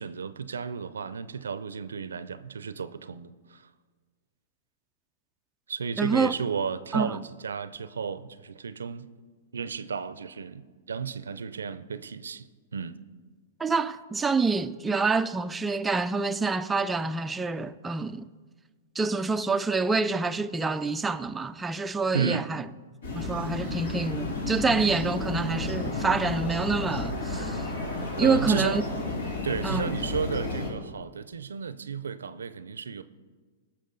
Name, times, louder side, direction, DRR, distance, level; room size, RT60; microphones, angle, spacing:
voice 1, 0.0-3.7 5.7-9.1 9.5-13.0 22.1-22.5 28.2-28.9 29.4-33.0, right 6 dB, 85° right, 0.5 m, -33 dB
voice 2, 6.0-6.3 6.9-7.2 13.6-18.3 19.0-22.6 23.1-27.7 28.2-28.8 29.6-29.9, right 4 dB, 10° right, 0.3 m, -27 dB
sound 1, 23.0-30.7, left 2 dB, 75° left, 3.2 m, -32 dB
17.5 x 6.5 x 3.9 m
hypercardioid pair, 125°, 0 cm